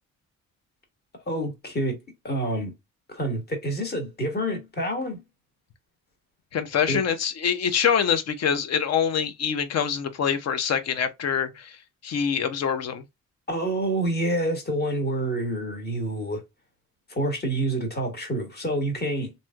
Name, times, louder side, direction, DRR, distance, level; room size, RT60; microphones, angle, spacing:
voice 1, 1.3-2.0 2.2-2.7 3.1-5.2 6.9-7.0 13.5-16.4 17.1-19.3, right 1 dB, 35° left, 1.3 m, -27 dB
voice 2, 6.5-11.8 12.0-13.0, left 7 dB, 55° left, 0.6 m, -25 dB
3.1 x 2.7 x 2.3 m
cardioid pair, 90°, 30 cm